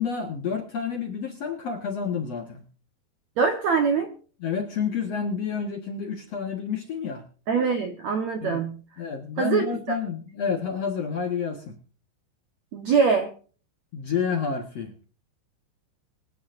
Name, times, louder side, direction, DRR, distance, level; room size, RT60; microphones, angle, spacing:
voice 1, 0.0-2.6 4.4-7.2 8.4-8.6 9.0-11.8 13.9-15.1, left 6 dB, 65° left, 4 dB, 1.6 m, -29 dB
voice 2, 3.4-4.1 7.5-8.8 9.4-10.0 12.7-13.3, right 5 dB, 75° right, 5 dB, 1.6 m, -23 dB
24.5 x 9.6 x 2.6 m, 0.40 s
omnidirectional pair, 5.3 m